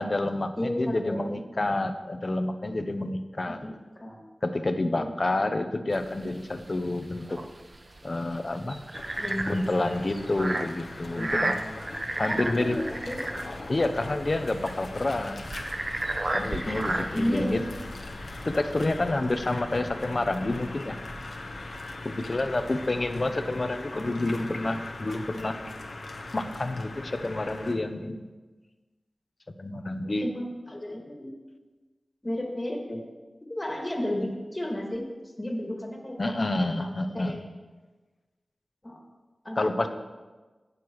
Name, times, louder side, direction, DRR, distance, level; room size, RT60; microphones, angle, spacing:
voice 1, 0.0-3.6 4.4-7.5 8.0-8.8 9.4-11.6 12.2-12.8 13.7-15.5 16.3-17.6 18.4-21.0 22.0-25.6 26.3-28.3 29.6-30.3 36.2-37.4 39.6-39.9, left 2 dB, 45° left, 8 dB, 0.7 m, -28 dB
voice 2, 0.6-1.2 1.6-1.7 3.5-4.2 4.9-5.2 9.2-9.7 11.1-11.7 12.3-13.2 16.6-17.7 23.9-24.4 30.2-31.3 32.2-33.0 33.5-35.1 35.4-36.2 37.1-37.4 38.8-39.1 39.4-39.9, left 1 dB, 25° left, 0 dB, 2.0 m, -33 dB
sound 1, 5.9-18.5, right 2 dB, 40° right, 0.7 m, -34 dB
sound 2, 8.9-27.7, left 2 dB, 75° left, 1.0 m, -40 dB
sound 3, 15.4-23.7, equal, 5° left, 1.3 m, -51 dB
18.0 x 6.7 x 3.1 m, 1.3 s
wide cardioid pair, 80°, 0 cm